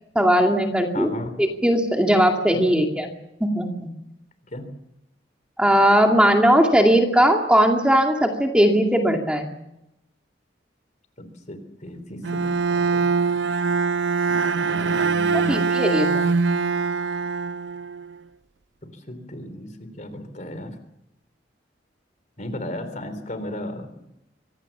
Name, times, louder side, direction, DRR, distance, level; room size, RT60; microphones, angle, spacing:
voice 1, 0.1-1.1 1.4-3.1 3.4-3.9 5.6-9.5 15.3-16.3, equal, 5° right, 2 dB, 2.4 m, -19 dB
voice 2, 0.9-1.4 2.5-2.6 4.5-4.6 11.2-13.1 14.7-15.7 18.9-20.7 22.4-24.1, left 1 dB, 45° left, 11 dB, 3.5 m, -35 dB
Bowed string instrument, 12.2-18.2, right 4 dB, 80° right, 0.8 m, -23 dB
24.5 x 18.0 x 7.2 m, 0.85 s
head